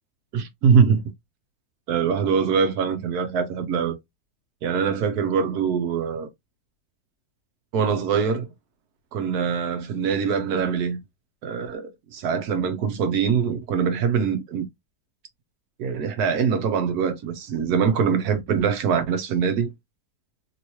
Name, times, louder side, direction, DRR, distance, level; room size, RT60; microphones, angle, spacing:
voice 1, 0.3-1.0 1.9-4.0 4.6-6.3 7.7-8.5 9.1-11.0 11.4-14.6 15.8-19.7, right 6 dB, 70° right, 1.2 m, -23 dB
3.1 x 2.9 x 2.9 m
omnidirectional pair, 1.7 m